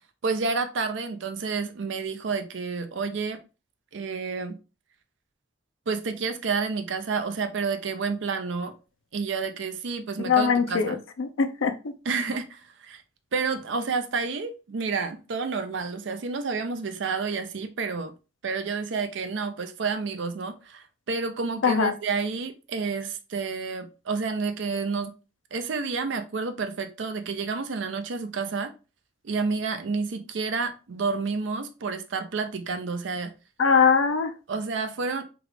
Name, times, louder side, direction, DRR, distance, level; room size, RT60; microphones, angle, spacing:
voice 1, 0.2-3.4 3.9-4.6 5.9-8.7 9.1-11.0 12.1-13.0 13.3-18.1 18.4-25.1 25.5-28.7 29.2-33.3 34.5-35.2, right 4 dB, 65° right, 0.5 m, -30 dB
voice 2, 10.2-11.7 21.6-21.9 33.6-34.3, left 6 dB, 80° left, 0.5 m, -22 dB
3.4 x 2.4 x 3.2 m
head